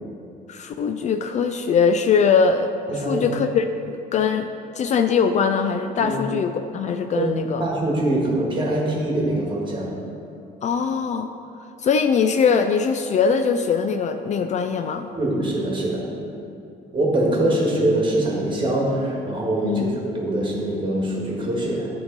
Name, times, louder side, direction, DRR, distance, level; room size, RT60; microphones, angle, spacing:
voice 1, 0.5-4.5 4.7-7.7 10.6-11.3 11.8-15.1 19.6-19.9, left 6 dB, 45° left, 7 dB, 0.4 m, -21 dB
voice 2, 2.9-3.3 6.0-6.2 7.1-7.3 7.6-10.0 15.1-16.1 16.9-21.9, right 1 dB, 30° right, -2 dB, 1.7 m, -23 dB
10.5 x 3.8 x 4.0 m, 2.7 s
cardioid pair, 110°, 17 cm